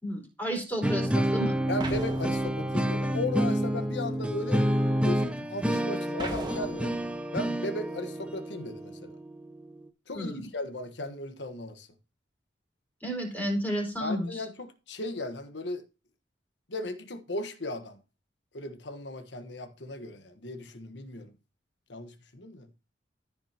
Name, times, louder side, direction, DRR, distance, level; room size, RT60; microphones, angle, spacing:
voice 1, 0.0-1.6 10.1-10.5 13.0-14.3, equal, 10° left, 4.3 m, -32 dB
sound 1, 0.8-9.8, equal, 5° right, 0.8 m, -29 dB
voice 2, 1.7-4.6 5.0-6.9 7.3-9.1 10.1-11.9 14.0-15.8 16.7-18.0 18.5-21.3 21.9-22.7, left 2 dB, 70° left, 1.4 m, -36 dB
sound 2, 1.8-3.0 6.2-7.2, right 1 dB, 25° right, 1.7 m, -38 dB
14.5 x 6.1 x 2.9 m
head